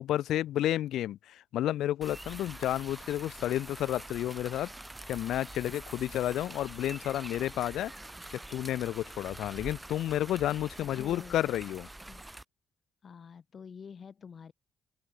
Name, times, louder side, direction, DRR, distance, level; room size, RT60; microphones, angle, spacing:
voice 1, 0.0-4.7 5.1-7.9 8.3-11.9, left 13 dB, 80° left, 0.3 m, -31 dB
sound 1, 2.0-12.4, right 1 dB, 10° right, 3.9 m, -46 dB
voice 2, 10.8-11.4 12.1-12.2 13.0-14.5, left 6 dB, 45° left, 2.7 m, -47 dB
open air
cardioid pair, 90°, 0 cm